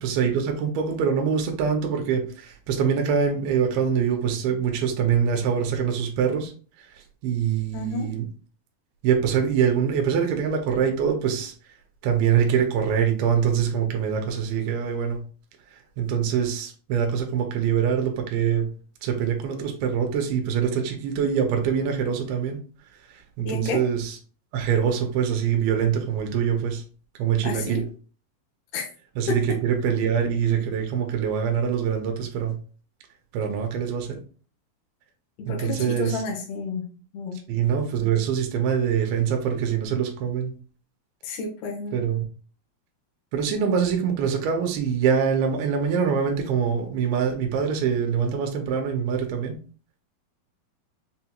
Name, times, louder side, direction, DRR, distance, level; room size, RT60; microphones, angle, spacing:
voice 1, 0.0-6.5 6.8-8.3 9.0-11.5 12.0-15.2 15.7-18.7 19.0-22.6 23.1-24.2 24.5-26.8 27.2-27.8 29.2-32.6 33.3-34.2 35.5-36.2 37.5-40.5 41.9-42.2 43.3-49.6, right 7 dB, 90° right, 4 dB, 2.5 m, -24 dB
voice 2, 7.7-8.1 23.4-23.8 27.4-27.8 28.7-28.8 29.3-29.4 35.4-36.8 37.1-37.4 41.2-42.0, left 4 dB, 70° left, -1 dB, 1.6 m, -30 dB
6.2 x 2.9 x 2.3 m, 0.39 s
omnidirectional pair, 4.4 m